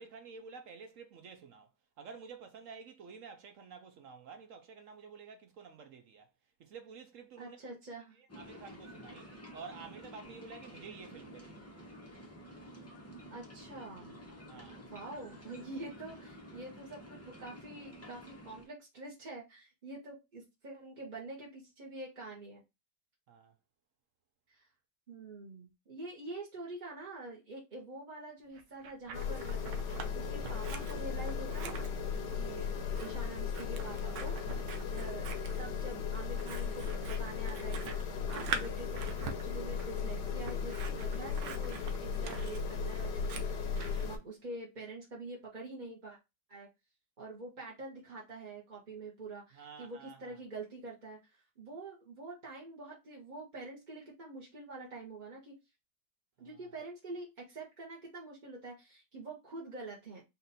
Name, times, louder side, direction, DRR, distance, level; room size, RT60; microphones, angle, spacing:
voice 1, 0.0-1.7 2.0-6.3 6.6-7.6 8.1-11.7 14.5-14.8 23.3-23.5 49.5-50.4 56.4-56.7, right 5 dB, 65° right, 0.8 m, -50 dB
voice 2, 7.4-8.2 13.3-14.2 14.9-22.6 24.5-24.7 25.1-29.6 30.1-34.3 34.9-43.7 44.0-46.2 46.5-46.7 47.2-55.6 56.4-60.2, right 2 dB, 35° right, 0.9 m, -46 dB
sound 1, 8.3-18.6, equal, 20° left, 0.4 m, -51 dB
Scissors, 28.6-30.1 30.4-44.1, right 6 dB, 80° right, 1.3 m, -44 dB
sound 2, 29.1-44.2, left 6 dB, 70° left, 1.3 m, -36 dB
4.2 x 2.5 x 4.0 m
omnidirectional pair, 1.9 m